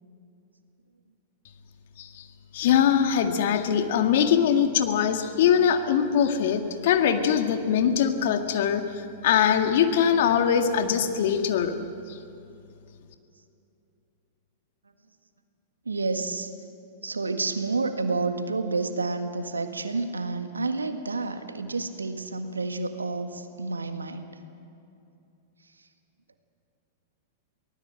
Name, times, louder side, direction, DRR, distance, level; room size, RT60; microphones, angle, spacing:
voice 1, 2.5-11.7, left 8 dB, 60° left, 7 dB, 2.0 m, -22 dB
voice 2, 15.8-16.5 17.0-24.3, right 3 dB, 90° right, 8 dB, 1.7 m, -29 dB
24.0 x 18.5 x 7.7 m, 2.7 s
hypercardioid pair, 100°, 0 cm